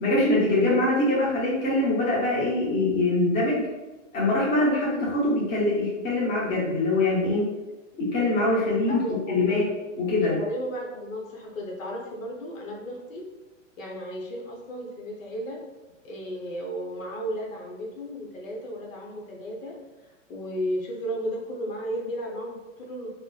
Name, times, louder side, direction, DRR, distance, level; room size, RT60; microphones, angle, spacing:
voice 1, 0.0-3.6 4.1-7.5 8.0-9.7 10.0-10.4, left 2 dB, 25° left, -6 dB, 0.9 m, -23 dB
voice 2, 8.9-9.6 10.2-13.3 13.8-15.6 16.0-19.8 20.0-23.1, equal, 85° left, -1 dB, 0.8 m, -34 dB
3.1 x 2.0 x 2.3 m, 1.1 s
hypercardioid pair, 125°, 39 cm